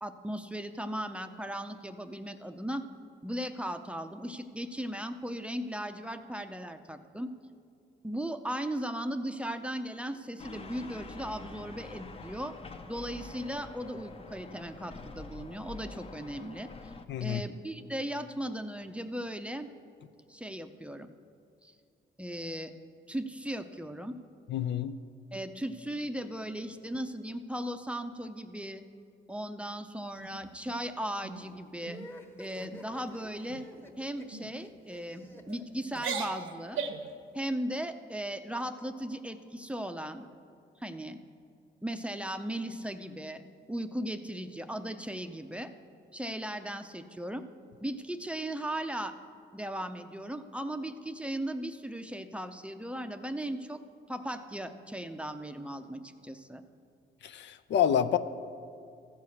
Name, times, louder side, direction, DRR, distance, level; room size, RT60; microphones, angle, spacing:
voice 1, 0.0-2.8 3.2-7.3 8.0-12.5 12.9-16.9 17.2-19.7 20.3-21.1 21.6-21.7 22.2-22.7 23.1-24.1 25.3-28.8 29.3-32.0 32.4-33.7 34.0-36.8 37.3-40.2 40.8-41.2 41.8-43.4 43.7-45.7 46.1-47.5 47.8-49.2 49.5-53.8 54.1-56.6, right 1 dB, 5° right, 8 dB, 0.5 m, -37 dB
sound 1, 10.4-17.0, left 3 dB, 30° left, 0.7 m, -46 dB
voice 2, 17.1-17.4 24.5-25.0 57.2-58.2, left 9 dB, 65° left, 11 dB, 0.5 m, -28 dB
sound 2, 30.2-30.8 31.2-31.5 31.8-32.1 32.5-32.8 33.5-33.8 34.3-34.5 35.2-35.6 35.9-37.1, right 6 dB, 80° right, 0.9 m, -38 dB
sound 3, 31.8-36.4, left 1 dB, 10° left, 1.1 m, -49 dB
14.5 x 4.9 x 7.0 m, 2.4 s
cardioid pair, 90°, 20 cm